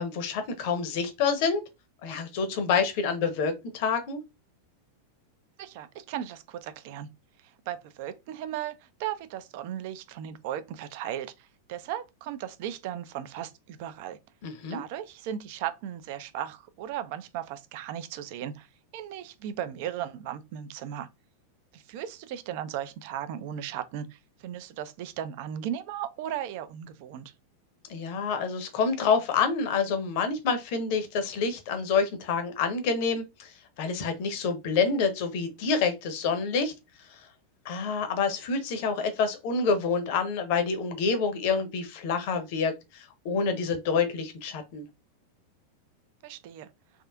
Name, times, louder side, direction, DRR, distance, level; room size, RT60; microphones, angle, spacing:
voice 1, 0.0-1.6 2.0-4.2 14.4-14.8 27.9-36.7 37.1-37.3 37.6-44.9, left 5 dB, 45° left, 0.7 m, -27 dB
voice 2, 5.6-7.1 7.4-14.2 14.7-18.7 18.9-21.1 21.7-27.3 46.2-46.7, right 10 dB, 50° right, 0.4 m, -36 dB
3.5 x 2.4 x 2.3 m
figure-of-eight pair, 90°, 0 cm